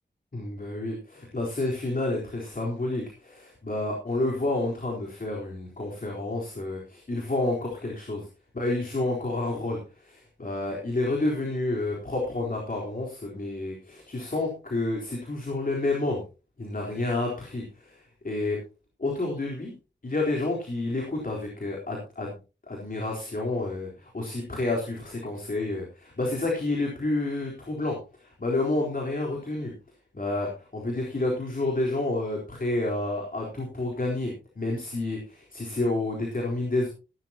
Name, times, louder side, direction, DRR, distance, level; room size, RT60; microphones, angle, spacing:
voice 1, 0.3-8.3 8.5-16.2 16.6-18.6 19.0-19.7 20.0-22.4 22.7-29.7 30.1-36.9, left 2 dB, 50° left, -2 dB, 4.1 m, -29 dB
17.0 x 12.0 x 3.0 m, 0.32 s
wide cardioid pair, 65°, 19 cm